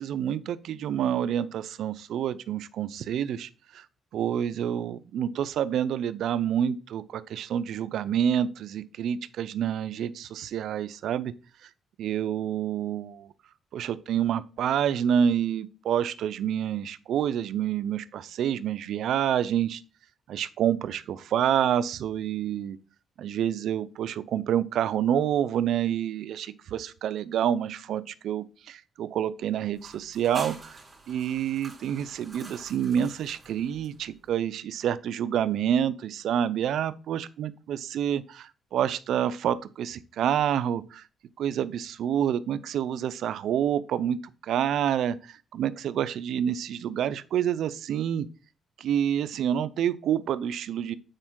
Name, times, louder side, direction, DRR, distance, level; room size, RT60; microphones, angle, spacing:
voice 1, 0.0-3.8 4.1-11.3 12.0-13.3 13.7-19.8 20.3-22.8 23.2-30.8 31.1-41.0 41.4-48.3 48.8-50.9, right 9 dB, 75° right, 0.5 m, -28 dB
sound 1, 29.7-34.3, right 3 dB, 20° right, 3.4 m, -46 dB
8.9 x 4.3 x 3.7 m
cardioid pair, 90°, 0 cm